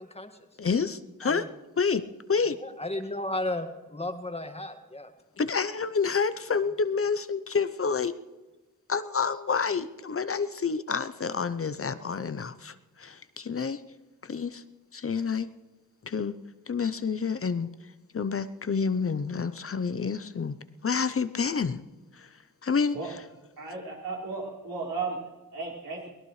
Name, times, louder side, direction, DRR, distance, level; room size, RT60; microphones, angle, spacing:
voice 1, 0.0-0.5 1.2-1.5 2.6-5.1, left 1 dB, 20° left, 6 dB, 1.9 m, -34 dB
voice 2, 0.6-1.5 1.8-2.0 2.3-2.6 5.4-8.1 8.9-13.8 14.2-14.6 14.9-15.5 16.0-16.3 16.7-17.7 18.1-20.6 20.8-21.8 22.1-22.3 22.6-23.2, left 5 dB, 40° left, 12 dB, 0.7 m, -28 dB
voice 3, 23.6-26.1, right 4 dB, 80° right, -4 dB, 4.9 m, -35 dB
23.5 x 18.0 x 3.2 m, 1.2 s
cardioid pair, 70°, 34 cm